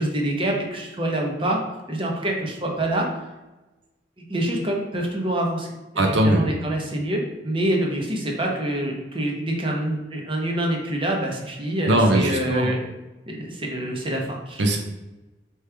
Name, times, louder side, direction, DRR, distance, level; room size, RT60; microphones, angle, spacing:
voice 1, 0.0-1.6 1.9-3.1 4.3-5.7 5.9-12.8 13.3-14.6, right 1 dB, 30° right, 0 dB, 0.9 m, -26 dB
voice 2, 6.0-6.4 11.9-12.7 14.6-14.8, right 1 dB, 80° right, 2 dB, 0.6 m, -19 dB
4.8 x 3.1 x 3.4 m, 1.1 s
head